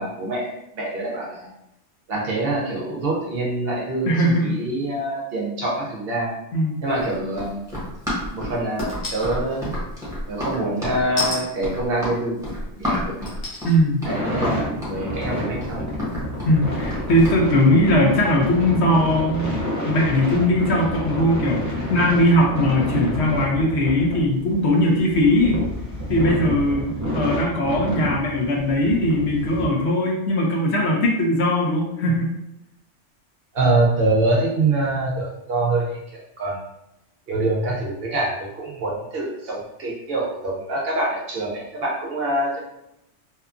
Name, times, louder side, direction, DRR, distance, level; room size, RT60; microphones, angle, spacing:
voice 1, 0.0-1.5 2.1-4.1 4.4-6.3 6.8-7.7 8.3-9.7 10.3-13.3 14.0-15.8 33.5-36.6 37.3-42.6, right 2 dB, 60° right, -3 dB, 0.8 m, -25 dB
voice 2, 4.1-4.6 6.5-6.8 13.6-14.1 16.5-19.5 19.9-25.6 26.1-32.3, left 1 dB, 70° left, -1 dB, 0.8 m, -20 dB
Run, 6.9-17.4, left 1 dB, 5° right, 0.9 m, -30 dB
sound 1, 8.8-9.3 11.2-11.4 12.3-12.4 13.3-13.8 14.3-14.4, left 2 dB, 85° left, 1.2 m, -29 dB
sound 2, 14.1-29.7, equal, 25° right, 0.4 m, -29 dB
2.8 x 2.2 x 2.4 m, 0.85 s
omnidirectional pair, 1.3 m